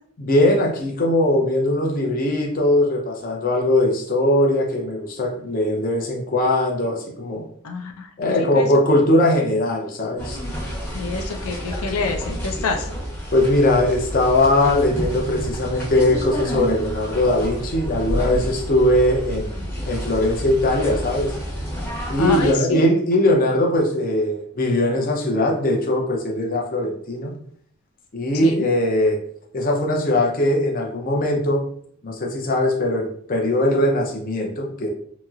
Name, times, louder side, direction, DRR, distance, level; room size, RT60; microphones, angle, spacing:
voice 1, 0.2-7.5 8.2-10.4 13.3-21.4 22.1-27.3 28.1-29.2 29.5-31.6 32.0-34.9, left 1 dB, 40° left, 1 dB, 0.5 m, -20 dB
voice 2, 7.6-8.1 8.4-8.7 10.9-12.9 22.2-22.8 28.4-28.7, left 3 dB, 90° left, 4 dB, 0.4 m, -27 dB
sound 1, 10.2-22.5, equal, 10° left, 0.8 m, -29 dB
2.9 x 2.8 x 2.3 m, 0.62 s
head